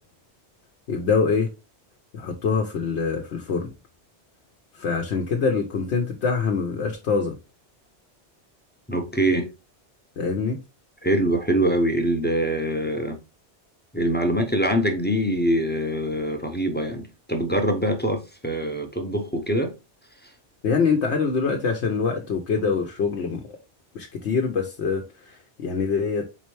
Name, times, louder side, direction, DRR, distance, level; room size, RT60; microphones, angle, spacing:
voice 1, 0.9-1.5 2.1-3.7 4.7-7.4 10.2-10.6 20.6-23.6 23.9-26.3, left 5 dB, 75° left, 1.0 m, -24 dB
voice 2, 8.9-9.5 11.0-13.2 13.9-19.8, right 1 dB, 10° left, 0.5 m, -24 dB
4.2 x 3.9 x 3.1 m
omnidirectional pair, 1.1 m